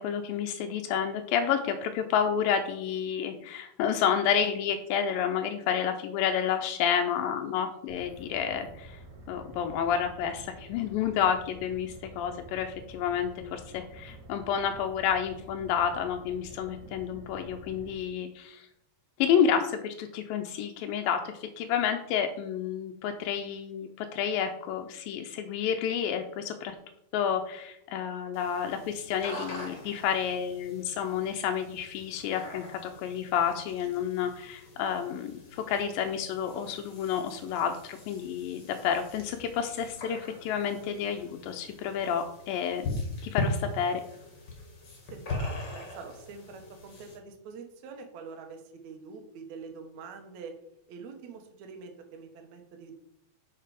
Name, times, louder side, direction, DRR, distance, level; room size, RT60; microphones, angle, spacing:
voice 1, 0.0-9.0 9.3-18.7 19.2-26.8 27.1-44.0, left 8 dB, 85° left, 5 dB, 2.4 m, -30 dB
sound 1, 7.9-17.9, right 2 dB, 85° right, 0.8 m, -49 dB
sound 2, 28.3-47.2, left 2 dB, 40° left, 1.6 m, -40 dB
voice 2, 45.0-50.6 50.9-53.0, right 5 dB, 65° right, 3 dB, 2.2 m, -45 dB
6.6 x 6.6 x 5.0 m, 0.77 s
omnidirectional pair, 4.1 m